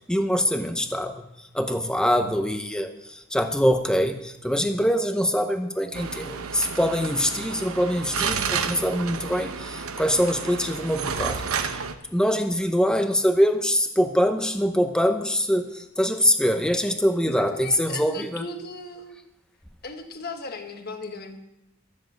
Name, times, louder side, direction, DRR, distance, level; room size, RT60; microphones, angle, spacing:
voice 1, 0.1-11.8 12.1-18.4, equal, 5° left, 7 dB, 0.8 m, -24 dB
sound 1, 5.9-11.9, right 6 dB, 80° right, 0.9 m, -31 dB
voice 2, 17.3-19.2 19.8-21.4, left 3 dB, 45° left, 5 dB, 1.4 m, -37 dB
13.0 x 7.4 x 7.8 m, 0.89 s
head